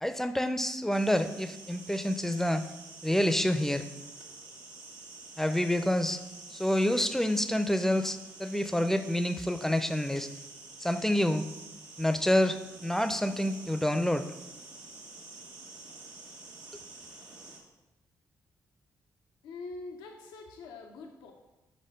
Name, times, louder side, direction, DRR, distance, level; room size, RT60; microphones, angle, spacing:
voice 1, 0.0-2.6 3.0-3.8 5.4-6.2 6.5-10.3 10.8-11.5 12.0-14.3, left 1 dB, 5° left, 9 dB, 0.5 m, -28 dB
sound 1, 0.9-17.6, right 3 dB, 85° right, 1.3 m, -48 dB
voice 2, 19.4-21.3, left 3 dB, 85° left, 2 dB, 0.5 m, -44 dB
5.0 x 4.4 x 5.1 m, 1.0 s
supercardioid pair, 50°, 8 cm